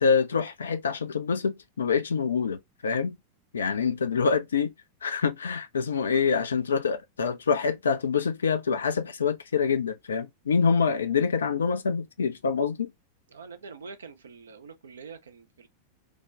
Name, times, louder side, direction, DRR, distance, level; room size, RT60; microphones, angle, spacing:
voice 1, 0.0-3.2 3.5-4.7 5.0-12.9, left 5 dB, 70° left, 0.5 m, -26 dB
voice 2, 13.3-15.7, right 5 dB, 70° right, 0.6 m, -45 dB
3.4 x 2.2 x 3.4 m
figure-of-eight pair, 90°, 0 cm